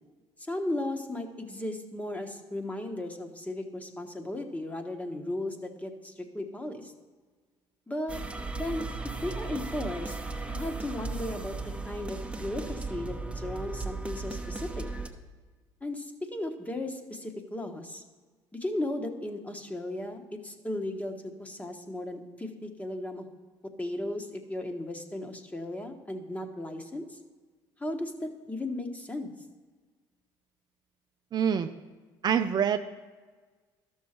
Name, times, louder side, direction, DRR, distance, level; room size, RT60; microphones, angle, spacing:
voice 1, 0.4-6.9 7.9-8.2 8.5-8.9 9.2-10.2 10.5-14.9 15.8-18.0 18.5-23.2 23.8-27.2 27.8-29.3, left 1 dB, 15° left, 5 dB, 1.2 m, -36 dB
sound 1, 8.1-15.1, right 3 dB, 10° right, 0.9 m, -36 dB
voice 2, 31.3-31.7 32.2-32.8, right 8 dB, 40° right, 8 dB, 0.5 m, -25 dB
12.5 x 6.4 x 4.4 m, 1.4 s
supercardioid pair, 75°, 11 cm